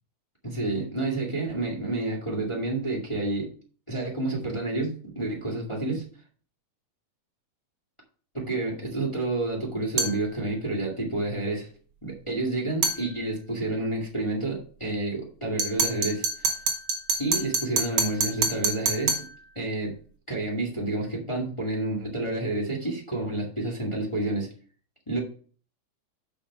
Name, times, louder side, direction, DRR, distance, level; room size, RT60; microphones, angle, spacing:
voice 1, 0.4-3.5 3.9-6.1 8.3-11.7 12.0-16.5 17.2-19.2 19.5-20.0 20.3-24.5 25.1-25.2, right 2 dB, 10° left, -1 dB, 1.7 m, -29 dB
sound 1, 10.0-10.2 12.8-13.0 15.6-19.3, right 4 dB, 50° right, 1.9 m, -26 dB
6.2 x 6.1 x 6.8 m, 0.43 s
omnidirectional pair, 3.7 m